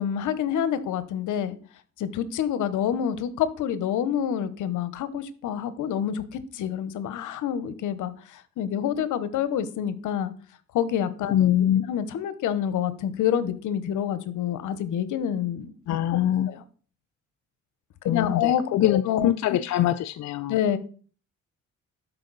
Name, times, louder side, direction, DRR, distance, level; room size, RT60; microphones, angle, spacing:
voice 1, 0.0-1.6 2.0-10.3 10.7-11.3 11.9-15.8 16.5-16.6 18.0-19.3 20.5-20.8, left 9 dB, 80° left, 0.9 m, -27 dB
voice 2, 11.3-11.9 15.9-16.5 18.1-20.6, left 12 dB, 65° left, 0.5 m, -23 dB
12.0 x 4.7 x 4.0 m
cardioid pair, 90°, 30 cm